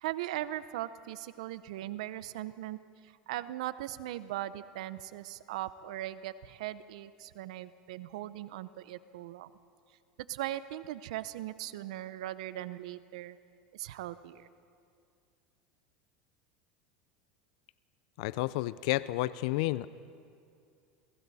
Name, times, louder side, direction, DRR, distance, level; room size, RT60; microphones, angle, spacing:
voice 1, 0.0-2.8 3.3-9.5 10.3-13.4 13.7-14.5, right 14 dB, 80° right, 15 dB, 0.7 m, -39 dB
voice 2, 18.2-19.9, left 18 dB, 70° left, 17 dB, 0.5 m, -31 dB
29.0 x 22.0 x 4.2 m, 2.4 s
supercardioid pair, 110°, 4 cm